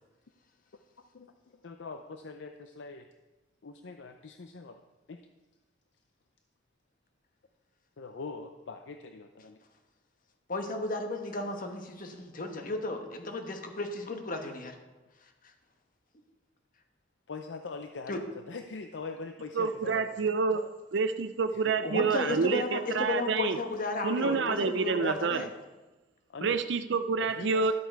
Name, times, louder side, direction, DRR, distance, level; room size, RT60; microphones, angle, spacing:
voice 1, 1.0-3.1 3.6-4.8 5.1-5.2 8.0-9.6 17.3-20.7 21.5-21.8 25.0-25.5 26.3-26.6 27.2-27.7, left 4 dB, 70° left, 7 dB, 0.5 m, -43 dB
voice 2, 10.5-14.7 18.1-18.2 21.8-25.5, left 2 dB, 50° left, 5 dB, 1.3 m, -34 dB
voice 3, 19.6-20.6 20.9-23.6 24.0-25.4 26.4-27.7, right 5 dB, 65° right, 10 dB, 0.5 m, -28 dB
12.5 x 8.1 x 4.6 m, 1.1 s
head